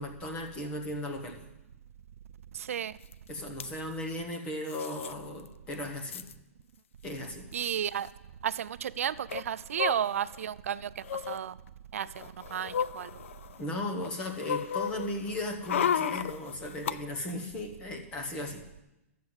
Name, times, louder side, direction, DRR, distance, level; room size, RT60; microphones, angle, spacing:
voice 1, 0.0-1.4 3.3-6.2 7.0-7.5 13.6-18.6, left 1 dB, 15° left, 1.1 m, -36 dB
voice 2, 2.5-2.9 7.5-8.1 8.4-11.6 11.9-12.1 12.5-13.1, right 9 dB, 70° right, 0.5 m, -32 dB
sound 1, 3.1-3.2 3.4-3.7 4.7-5.1 5.5-5.6 5.7-6.3 7.2-7.3 7.5-7.7 9.3-10.4 11.0-11.4 12.0-13.7 14.0-16.9 17.3-17.4, left 8 dB, 60° left, 0.5 m, -33 dB
12.5 x 7.5 x 7.9 m
hypercardioid pair, 180°, 8 cm